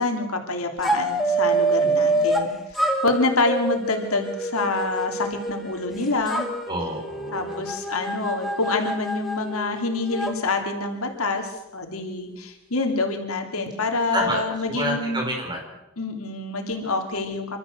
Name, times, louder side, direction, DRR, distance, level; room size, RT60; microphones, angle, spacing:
voice 1, 0.0-6.5 7.3-15.2 16.0-17.6, left 3 dB, 85° left, 4 dB, 2.9 m, -26 dB
sound 1, 0.8-2.5 2.7-5.9 6.3-10.3, right 2 dB, ahead, 2.2 m, -26 dB
voice 2, 1.8-2.2 6.7-7.6 14.1-14.4 14.7-15.6, equal, 20° right, 1 dB, 4.8 m, -29 dB
26.5 x 13.5 x 7.8 m, 0.91 s
head